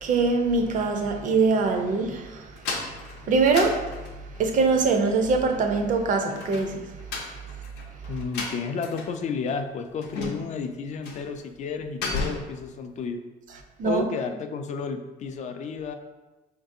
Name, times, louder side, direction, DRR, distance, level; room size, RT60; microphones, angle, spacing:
voice 1, 0.0-2.5 3.2-3.8 4.4-6.8 13.8-14.0, right 4 dB, 50° right, 5 dB, 0.5 m, -23 dB
sound 1, 2.6-4.5 6.3-9.2 9.5-9.6 10.0-10.6 11.0-11.3 11.6-12.6, left 3 dB, 85° left, 0.6 m, -34 dB
voice 2, 8.1-13.2 13.8-15.9, left 5 dB, 45° left, 7 dB, 0.4 m, -32 dB
4.6 x 2.6 x 2.6 m, 1.2 s
cardioid pair, 110°, 17 cm